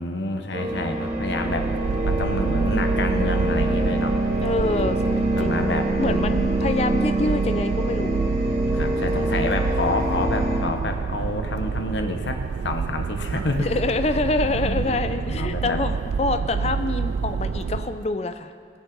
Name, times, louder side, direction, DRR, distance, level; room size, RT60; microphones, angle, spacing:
voice 1, 0.0-1.7 2.1-4.2 5.4-6.3 8.7-13.7 14.5-15.8, left 2 dB, 90° left, 5 dB, 1.1 m, -28 dB
sound 1, 0.5-10.6, right 1 dB, 40° right, 2.1 m, -25 dB
sound 2, 0.8-18.1, right 5 dB, 80° right, 0.3 m, -28 dB
voice 2, 2.2-2.5 4.4-8.2 13.6-18.5, left 2 dB, 35° left, 9 dB, 0.5 m, -26 dB
20.5 x 7.2 x 4.0 m, 2.4 s
head